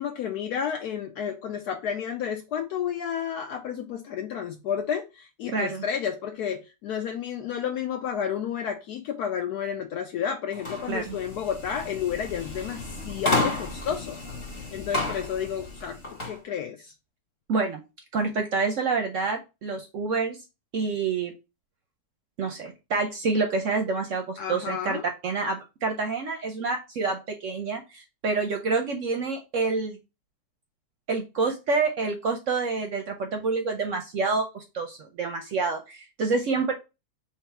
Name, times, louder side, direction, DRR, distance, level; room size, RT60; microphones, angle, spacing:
voice 1, 0.0-14.2 14.7-16.0 16.2-16.9 24.4-25.1, left 8 dB, 75° left, 1.1 m, -31 dB
voice 2, 5.5-5.8 10.9-11.2 17.5-17.8 18.1-20.4 20.7-21.3 22.4-30.0 31.1-36.7, right 4 dB, 65° right, 0.8 m, -27 dB
sound 1, 10.5-16.4, left 2 dB, 35° left, 1.3 m, -32 dB
3.8 x 2.9 x 4.4 m
omnidirectional pair, 1.8 m